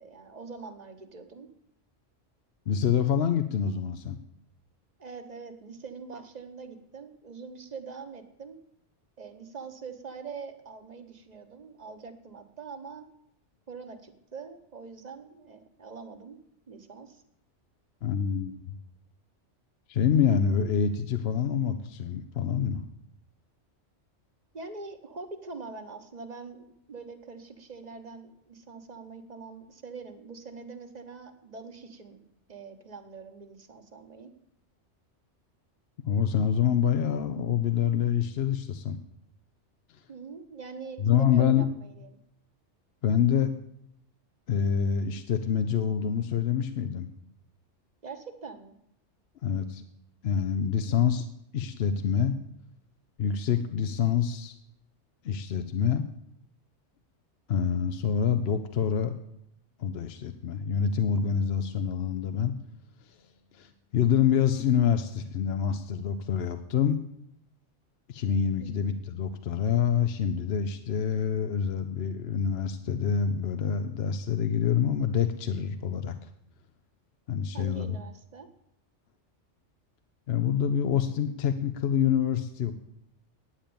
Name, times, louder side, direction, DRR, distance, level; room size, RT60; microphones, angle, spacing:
voice 1, 0.0-1.5 5.0-8.6 9.2-13.0 13.7-16.4 16.7-17.2 24.5-32.2 32.5-34.3 40.1-42.2 48.0-48.7 50.9-51.0 68.6-68.9 77.5-78.5, right 4 dB, 40° right, 7 dB, 1.1 m, -43 dB
voice 2, 2.7-4.2 18.0-18.7 19.9-22.9 36.0-39.0 39.9-40.0 41.0-41.7 43.0-43.5 44.5-47.1 49.4-49.8 50.2-51.3 51.5-52.4 53.2-54.5 55.2-56.0 57.5-59.1 59.8-62.5 63.0-63.2 63.5-67.0 68.1-76.3 77.3-78.0 80.3-82.7, left 8 dB, 65° left, 8 dB, 0.9 m, -26 dB
10.0 x 8.9 x 6.9 m, 0.75 s
omnidirectional pair, 1.2 m